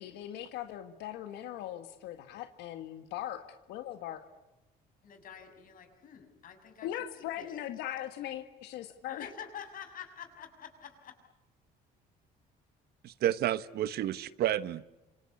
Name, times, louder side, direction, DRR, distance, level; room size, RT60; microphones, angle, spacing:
voice 1, 0.0-4.2 6.8-9.3, left 12 dB, 90° left, 1.8 m, -40 dB
voice 2, 5.0-6.9 7.4-7.5 9.1-11.1, left 7 dB, 55° left, 6.6 m, -47 dB
voice 3, 13.0-14.9, right 12 dB, 70° right, 1.1 m, -30 dB
27.0 x 25.5 x 8.5 m
cardioid pair, 110°, 17 cm